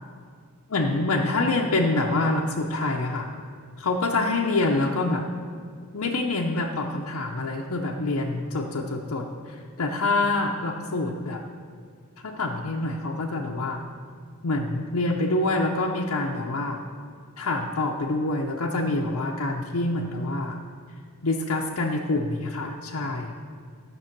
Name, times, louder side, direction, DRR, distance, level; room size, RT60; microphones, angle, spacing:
voice 1, 0.7-3.3 3.8-5.3 5.9-11.4 12.2-13.8 14.4-16.8 17.4-20.6 21.2-23.3, left 2 dB, 90° left, -1 dB, 0.7 m, -26 dB
13.0 x 6.8 x 5.9 m, 2.1 s
head